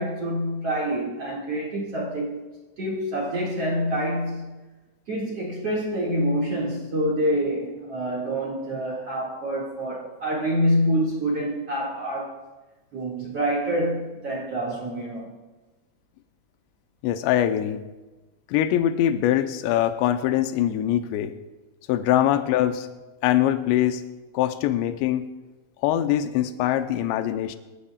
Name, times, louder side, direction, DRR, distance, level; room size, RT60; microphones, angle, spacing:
voice 1, 0.0-2.4 2.8-4.6 5.1-12.4 12.9-15.3, equal, 45° right, 2.2 m, -26 dB
voice 2, 17.0-17.8 18.5-21.4 21.9-22.9 23.2-24.0 24.3-25.3 25.8-27.6, left 11 dB, 85° left, 2.6 m, -23 dB
26.0 x 15.5 x 2.4 m
omnidirectional pair, 5.7 m